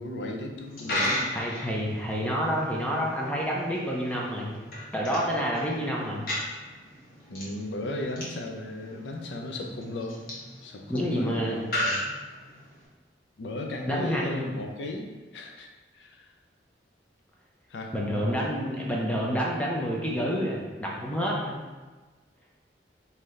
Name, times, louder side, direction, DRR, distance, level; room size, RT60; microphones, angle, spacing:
voice 1, 0.0-1.3 1.6-1.8 7.3-10.2 10.6-12.0 13.4-16.3 17.7-17.9, left 1 dB, 85° left, 2 dB, 0.5 m, -36 dB
Coin (dropping), 0.6-12.9, left 1 dB, 55° left, 1.2 m, -36 dB
voice 2, 1.3-4.5 4.9-6.2 10.9-11.6 13.9-14.6 17.9-21.6, equal, 10° left, -3 dB, 0.6 m, -28 dB
3.8 x 2.8 x 3.2 m, 1.3 s
head